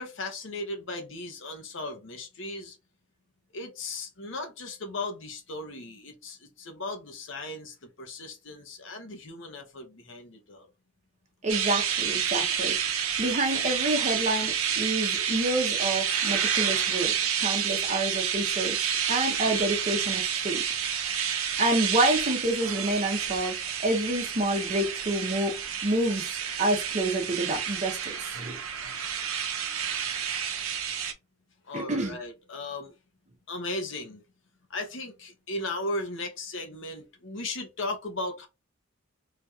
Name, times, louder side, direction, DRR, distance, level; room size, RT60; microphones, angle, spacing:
voice 1, 0.0-2.8 3.5-10.7 31.6-32.9 33.5-34.2 34.7-38.5, left 2 dB, 60° left, 0.8 m, -36 dB
voice 2, 11.4-17.1 17.4-20.6 21.6-23.5 23.8-26.3 26.6-28.6 31.7-32.2, right 1 dB, 35° right, 0.6 m, -28 dB
sound 1, 11.5-31.1, right 8 dB, 85° right, 0.6 m, -29 dB
3.2 x 2.8 x 2.3 m
head